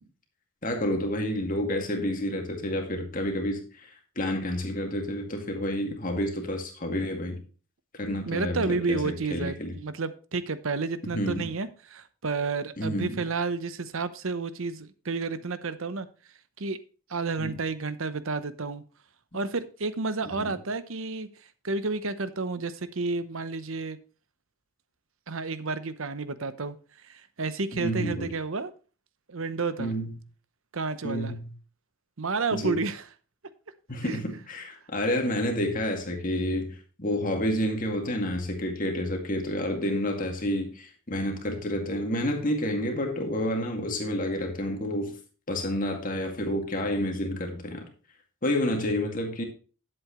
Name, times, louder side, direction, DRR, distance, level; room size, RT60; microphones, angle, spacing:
voice 1, 0.6-3.9 4.2-7.4 7.9-9.8 11.1-11.5 12.8-13.2 17.4-17.5 20.3-20.6 27.7-28.3 29.8-30.1 31.0-31.5 32.5-32.8 33.9-45.2 45.5-47.9 48.4-49.4, left 1 dB, 40° left, 2.1 m, -29 dB
voice 2, 8.3-16.1 16.6-16.8 17.1-18.8 19.3-21.3 21.6-24.0 25.3-26.8 27.0-28.7 29.3-29.9 30.7-31.4 32.2-33.1 34.0-34.2, right 3 dB, 65° right, 0.9 m, -31 dB
11.5 x 7.9 x 3.1 m
head